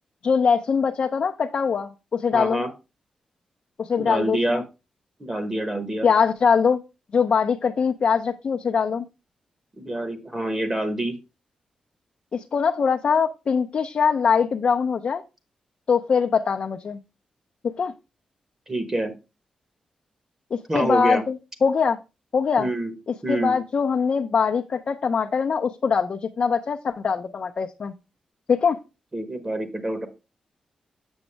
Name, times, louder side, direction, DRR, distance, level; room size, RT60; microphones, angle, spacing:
voice 1, 0.2-2.6 3.8-4.6 6.0-6.8 7.1-9.1 12.3-15.2 15.9-17.0 17.6-17.9 20.5-22.0 22.3-22.7 23.3-27.9 28.5-28.8, left 6 dB, 55° left, 4 dB, 0.5 m, -22 dB
voice 2, 2.3-2.7 4.0-4.6 5.2-6.1 9.8-11.1 18.7-19.1 20.7-21.2 22.6-22.9 23.2-23.5 29.1-30.1, right 1 dB, 20° right, 8 dB, 1.0 m, -26 dB
7.1 x 6.1 x 3.3 m, 0.27 s
wide cardioid pair, 110°, 2 cm